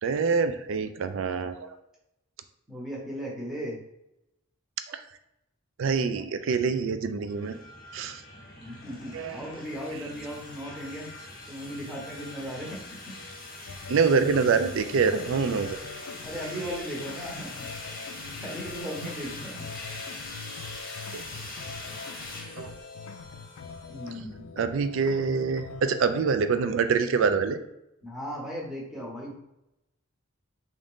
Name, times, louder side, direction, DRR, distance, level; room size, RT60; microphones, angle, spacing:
voice 1, 0.0-1.8 4.9-5.0 5.8-7.6 7.9-8.2 9.1-9.4 13.9-15.8 21.1-21.2 22.6-22.7 24.1-24.2 24.6-27.6, right 5 dB, 60° right, 10 dB, 0.3 m, -25 dB
voice 2, 2.7-3.8 8.6-11.1 11.5-13.2 16.2-17.7 18.2-19.7 23.9-24.4 28.0-29.3, equal, ahead, -4 dB, 0.8 m, -37 dB
sound 1, 7.3-24.0, left 2 dB, 45° left, 0.9 m, -42 dB
sound 2, 13.7-26.1, left 4 dB, 85° left, 0.4 m, -43 dB
3.7 x 2.5 x 3.6 m, 0.86 s
head